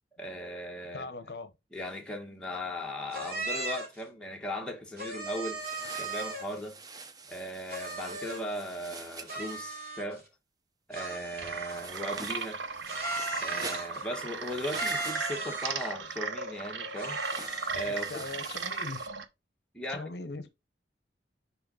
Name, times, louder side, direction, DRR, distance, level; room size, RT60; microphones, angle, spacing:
voice 1, 0.2-1.1 1.7-5.6 6.0-6.8 7.3-10.2 10.9-12.6 13.4-17.2 17.7-18.1 19.7-20.1, equal, 5° left, 1.2 m, -37 dB
voice 2, 0.9-1.5 17.9-19.0 19.9-20.5, left 3 dB, 60° left, 0.7 m, -40 dB
sound 1, 3.1-4.0 5.0-6.6 7.7-8.5 9.3-10.3 10.9-12.1 12.9-14.0 14.7-15.9 17.0-17.9, right 2 dB, 55° right, 2.7 m, -37 dB
sound 2, 5.5-9.6 11.7-15.6 17.2-19.1, right 4 dB, 20° right, 0.5 m, -46 dB
sound 3, 11.3-19.2, right 5 dB, 80° right, 0.7 m, -36 dB
5.6 x 4.4 x 3.9 m
head